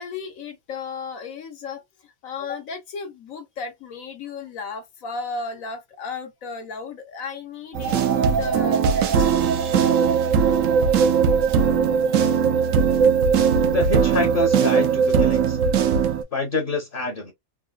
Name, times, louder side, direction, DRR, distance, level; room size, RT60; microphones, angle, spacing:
voice 1, 0.0-9.6 12.0-12.3, left 4 dB, 80° left, 1.3 m, -35 dB
sound 1, 7.7-16.2, right 6 dB, 70° right, 1.0 m, -19 dB
voice 2, 13.7-15.6 16.3-17.3, left 3 dB, 45° left, 1.0 m, -26 dB
3.6 x 2.3 x 2.2 m
omnidirectional pair, 1.4 m